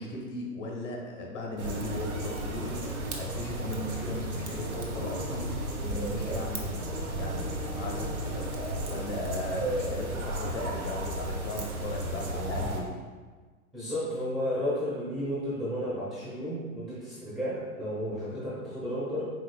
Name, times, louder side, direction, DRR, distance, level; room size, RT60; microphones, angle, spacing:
voice 1, 0.0-5.5 5.8-6.8 7.2-12.9, left 1 dB, 55° left, -1 dB, 1.2 m, -37 dB
sound 1, 1.6-12.8, right 1 dB, 85° right, 0.9 m, -33 dB
voice 2, 13.7-19.3, equal, ahead, -10 dB, 0.5 m, -32 dB
4.9 x 3.6 x 2.3 m, 1.4 s
figure-of-eight pair, 115°, 43 cm